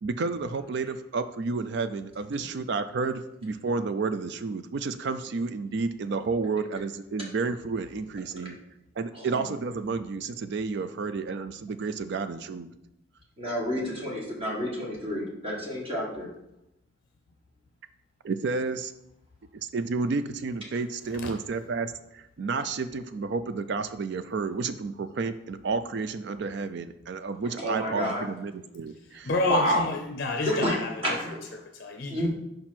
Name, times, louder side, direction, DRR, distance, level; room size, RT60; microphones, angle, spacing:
voice 1, 0.0-8.6 9.0-12.7 18.2-18.9 19.5-29.3, right 4 dB, 60° right, 11 dB, 0.4 m, -31 dB
voice 2, 9.1-9.4 13.4-16.3 27.6-28.2 29.5-29.9 30.4-31.4 32.1-32.3, equal, 30° right, -3 dB, 1.7 m, -29 dB
voice 3, 29.1-31.2 31.5-32.3, left 2 dB, 50° left, 4 dB, 0.5 m, -30 dB
5.2 x 4.4 x 5.9 m, 0.83 s
head